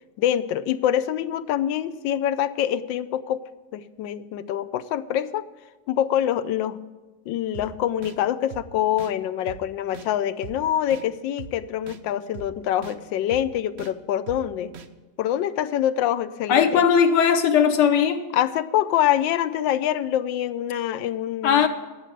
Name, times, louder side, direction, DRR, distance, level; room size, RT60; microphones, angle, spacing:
voice 1, 0.2-3.4 3.7-5.4 5.9-6.8 7.3-14.7 15.2-16.8 18.3-21.7, left 11 dB, 85° left, 1.3 m, -25 dB
sound 1, 7.5-7.7 8.0-8.2 8.5-8.6 9.0-9.1 9.5-9.6 9.9-10.1 10.4-10.6 10.9-11.0 11.4-11.5 11.9-12.0 12.3-12.5 12.8-13.0 13.3-13.4 13.8-13.9 14.3-14.4 14.7-14.9, right 8 dB, 90° right, 0.5 m, -39 dB
voice 2, 16.5-18.2 21.4-21.7, left 7 dB, 70° left, 1.4 m, -18 dB
10.0 x 7.6 x 8.9 m
omnidirectional pair, 2.0 m